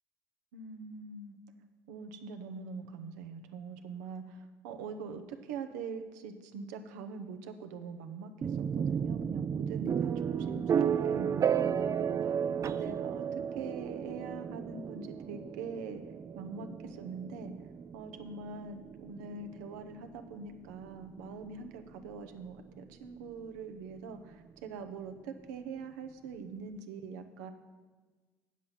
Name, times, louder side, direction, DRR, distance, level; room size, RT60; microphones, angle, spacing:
voice 1, 0.5-1.4 1.9-16.0 16.3-17.5 17.9-27.5, right 5 dB, 85° right, 7 dB, 0.8 m, -43 dB
sound 1, 8.4-22.2, right 8 dB, 35° right, 0.3 m, -33 dB
8.2 x 7.3 x 5.8 m, 1.4 s
hypercardioid pair, 75°, 9 cm